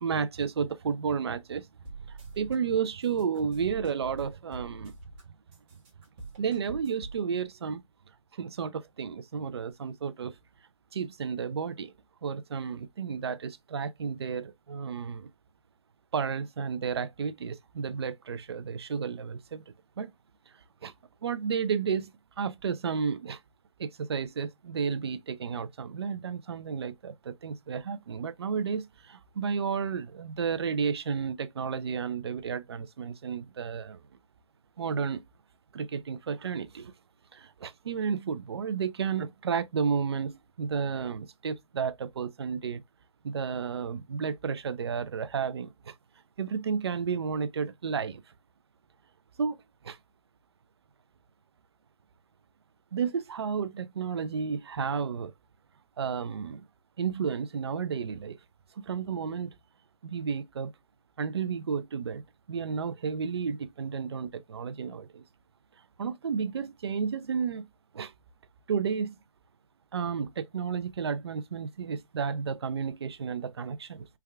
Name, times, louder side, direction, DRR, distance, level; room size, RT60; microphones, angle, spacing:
voice 1, 0.0-1.7 2.1-4.9 6.4-7.8 8.3-10.4 10.9-11.9 12.2-15.3 16.1-19.6 20.0-20.1 20.8-20.9 21.2-22.1 22.4-23.4 23.8-34.0 34.8-35.2 35.7-36.9 37.3-42.8 43.2-45.9 46.4-48.2 49.4-49.6 49.8-50.0 52.9-55.3 56.0-56.7 57.0-58.4 58.8-59.5 60.0-60.7 61.2-62.2 62.5-65.2 66.0-67.7 67.9-68.1 68.7-69.2 69.9-74.1, right 6 dB, 50° right, 0.4 m, -32 dB
sound 1, 1.8-2.5 2.8-5.2 5.5-7.2, right 3 dB, 20° right, 1.0 m, -44 dB
3.4 x 2.3 x 3.2 m
hypercardioid pair, 160°, 18 cm